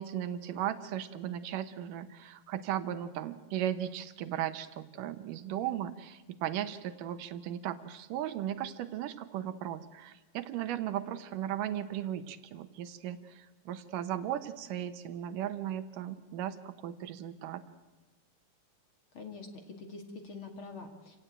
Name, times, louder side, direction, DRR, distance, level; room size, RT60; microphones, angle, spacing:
voice 1, 0.0-17.6, right 11 dB, 80° right, 11 dB, 2.6 m, -36 dB
voice 2, 19.1-21.2, left 4 dB, 40° left, 4 dB, 2.8 m, -45 dB
28.0 x 17.0 x 9.0 m, 1.2 s
omnidirectional pair, 3.8 m